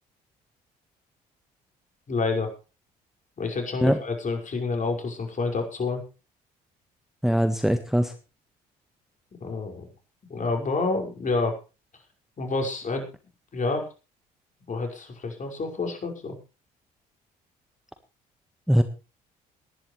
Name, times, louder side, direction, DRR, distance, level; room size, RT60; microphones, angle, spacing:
voice 1, 2.1-2.5 3.4-6.0 9.4-9.9 10.3-11.6 12.4-13.1 13.5-13.9 14.7-16.3, left 3 dB, 40° left, 3 dB, 5.7 m, -28 dB
voice 2, 7.2-8.1 18.7-18.8, equal, ahead, 8 dB, 1.6 m, -21 dB
22.0 x 11.0 x 3.3 m, 0.32 s
hypercardioid pair, 60°, 19 cm